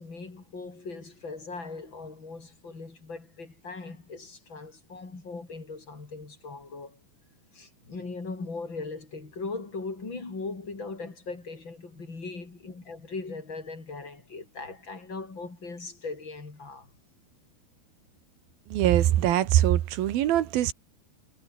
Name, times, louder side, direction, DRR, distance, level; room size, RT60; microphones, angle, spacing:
voice 1, 0.0-7.0 7.5-16.9, left 3 dB, 30° left, 5.4 m, -39 dB
voice 2, 18.7-20.7, right 12 dB, 70° right, 3.2 m, -22 dB
omnidirectional pair, 4.6 m